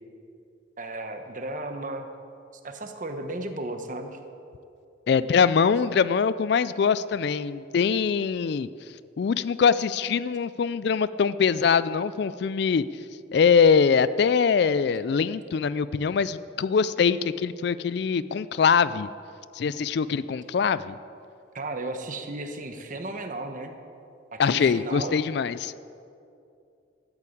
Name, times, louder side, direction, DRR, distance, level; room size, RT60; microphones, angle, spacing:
voice 1, 0.8-2.1 2.6-4.2 21.5-23.7 24.3-25.2, right 2 dB, 40° right, 6 dB, 1.1 m, -34 dB
voice 2, 5.1-8.7 9.2-12.8 13.3-19.1 19.5-20.9 24.4-25.7, left 6 dB, 55° left, 16 dB, 0.3 m, -23 dB
13.0 x 8.4 x 8.5 m, 2.6 s
head